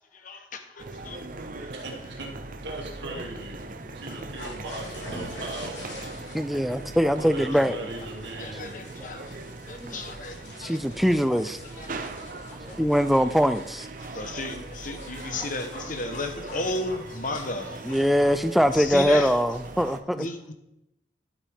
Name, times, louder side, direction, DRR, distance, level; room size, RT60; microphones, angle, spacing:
voice 1, 0.1-1.2 1.6-1.7 6.0-6.1 8.4-9.4 9.7-10.8 11.4-12.1 12.6-12.9 14.0-18.0 18.7-19.3 20.1-20.5, left 2 dB, 45° left, 1.1 m, -34 dB
sound 1, 0.8-20.0, right 2 dB, 45° right, 0.7 m, -40 dB
voice 2, 1.7-2.3 2.6-3.6 3.9-5.9 7.1-8.8 13.8-13.9, right 2 dB, 65° right, 2.2 m, -38 dB
sound 2, 3.8-18.5, left 1 dB, 80° left, 3.3 m, -46 dB
voice 3, 6.3-7.8 9.8-10.0 10.6-11.6 12.8-13.9 17.8-20.3, equal, ahead, 0.4 m, -22 dB
12.0 x 8.7 x 3.5 m
head